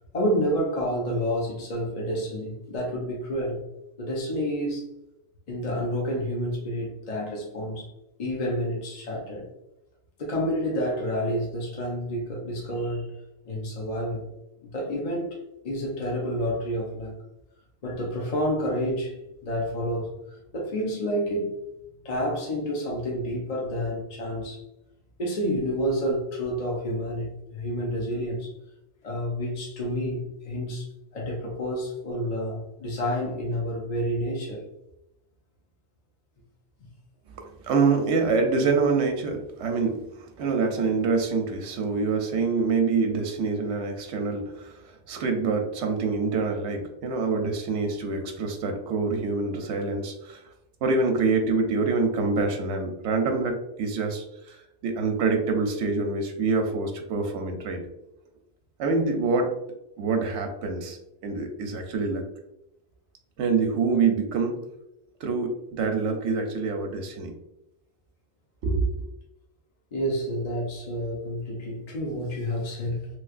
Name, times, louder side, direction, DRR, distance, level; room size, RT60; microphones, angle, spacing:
voice 1, 0.1-3.6 4.0-4.9 5.5-7.9 8.2-9.5 10.2-13.1 13.4-14.3 14.6-15.4 15.6-17.2 17.8-21.5 22.0-24.6 25.2-28.5 29.0-30.9 31.1-34.6 69.9-73.1, equal, 40° left, -2 dB, 0.7 m, -29 dB
voice 2, 37.4-50.4 50.8-57.8 58.8-59.5 60.0-62.2 63.4-64.6 65.2-67.3 68.6-69.0, right 4 dB, 90° right, 4 dB, 0.9 m, -26 dB
3.2 x 3.1 x 2.4 m, 0.88 s
omnidirectional pair, 1.1 m